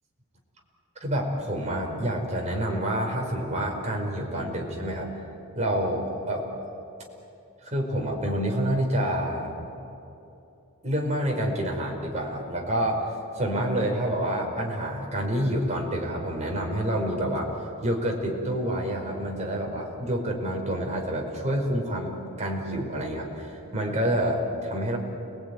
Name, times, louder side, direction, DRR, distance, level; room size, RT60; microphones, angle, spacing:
voice 1, 1.0-5.1 5.5-6.5 7.6-9.5 10.8-17.5 17.8-25.0, right 1 dB, 30° right, 0 dB, 4.9 m, -28 dB
29.5 x 20.0 x 9.6 m, 2.9 s
head